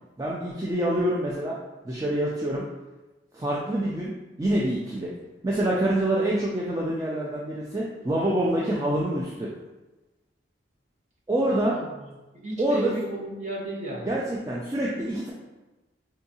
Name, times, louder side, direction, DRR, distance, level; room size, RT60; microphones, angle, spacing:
voice 1, 0.2-1.6 1.8-2.6 3.3-4.1 4.4-5.1 5.4-9.5 11.3-11.8 12.6-12.9 14.0-15.3, right 1 dB, 20° right, -4 dB, 0.3 m, -26 dB
voice 2, 11.4-11.8 12.3-14.1, right 2 dB, 35° right, -3 dB, 0.8 m, -34 dB
4.6 x 2.6 x 2.7 m, 1.1 s
head